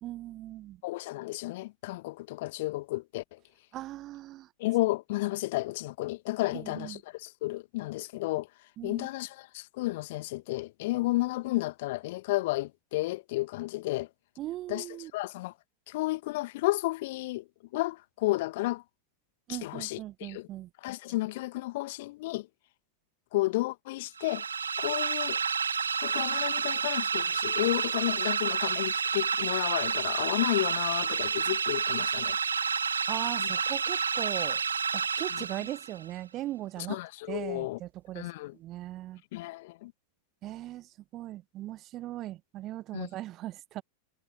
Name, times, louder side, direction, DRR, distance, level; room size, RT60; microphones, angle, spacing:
voice 1, 0.0-0.8 3.7-4.5 6.5-7.0 8.8-9.1 14.4-15.1 19.5-20.7 32.9-34.6 34.9-37.0 37.3-38.3 38.5-39.2 40.4-40.9 41.1-43.8, right 15 dB, 35° right, 1.6 m, -39 dB
voice 2, 0.8-3.4 4.6-8.5 8.8-14.1 14.7-14.9 15.1-15.5 15.9-17.4 17.7-18.8 19.5-20.5 20.8-22.5 23.3-24.4 24.8-25.4 26.0-32.4 33.4-33.5 35.3-35.5 36.9-37.8 38.2-38.6 39.3-39.9 42.9-43.1, left 19 dB, 50° left, 1.8 m, -32 dB
sound 1, 24.2-36.0, right 6 dB, 70° right, 0.5 m, -30 dB
figure-of-eight pair, 90°, 0 cm